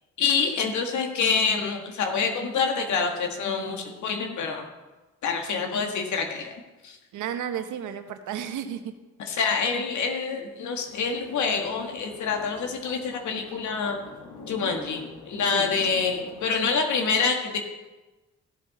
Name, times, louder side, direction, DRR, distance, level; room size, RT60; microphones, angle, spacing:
voice 1, 0.2-4.7 5.2-6.5 6.8-7.0 9.2-14.0 14.5-17.6, left 5 dB, 70° left, 3 dB, 1.9 m, -26 dB
voice 2, 7.1-8.9 15.5-15.7, right 9 dB, 80° right, 8 dB, 1.1 m, -33 dB
sound 1, 10.8-16.5, left 3 dB, 90° left, 2.0 m, -45 dB
15.0 x 7.5 x 4.3 m, 1.2 s
cardioid pair, 90°, 30 cm